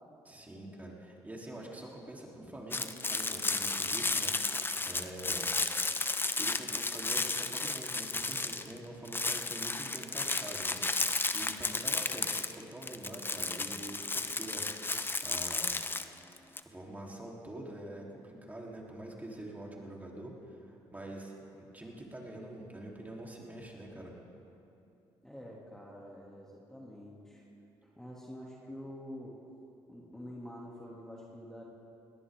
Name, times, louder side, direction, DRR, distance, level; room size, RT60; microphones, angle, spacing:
voice 1, 0.2-4.3 4.9-5.5 6.3-11.1 11.3-14.6 15.2-15.7 16.7-24.1, right 1 dB, 15° right, -2 dB, 3.8 m, -45 dB
sound 1, 2.7-8.8 9.1-16.6, left 3 dB, 20° left, 0.9 m, -33 dB
voice 2, 25.2-27.4 27.8-29.4 29.9-31.6, equal, 5° left, -4 dB, 2.9 m, -47 dB
21.0 x 18.0 x 3.8 m, 2.7 s
supercardioid pair, 60°, 10 cm